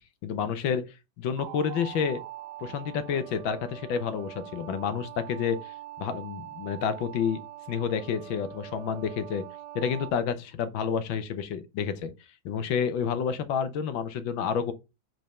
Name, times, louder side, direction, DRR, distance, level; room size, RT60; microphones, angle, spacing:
voice 1, 0.2-0.8 1.2-2.2 2.6-7.4 7.7-9.4 9.7-12.1 12.4-14.7, left 7 dB, 75° left, 1.6 m, -29 dB
sound 1, 1.4-10.1, right 13 dB, 85° right, 1.4 m, -43 dB
5.2 x 4.6 x 5.4 m
omnidirectional pair, 2.1 m